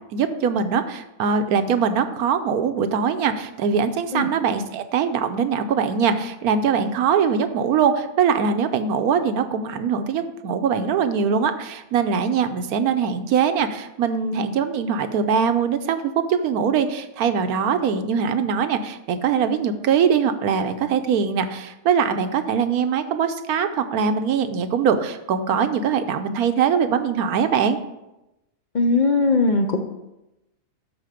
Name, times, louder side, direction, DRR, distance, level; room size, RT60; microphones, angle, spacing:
voice 1, 0.1-27.8, right 6 dB, 75° right, 9 dB, 1.1 m, -22 dB
voice 2, 28.7-29.8, left 3 dB, 60° left, 3 dB, 0.5 m, -19 dB
12.5 x 4.5 x 5.0 m, 0.93 s
omnidirectional pair, 1.7 m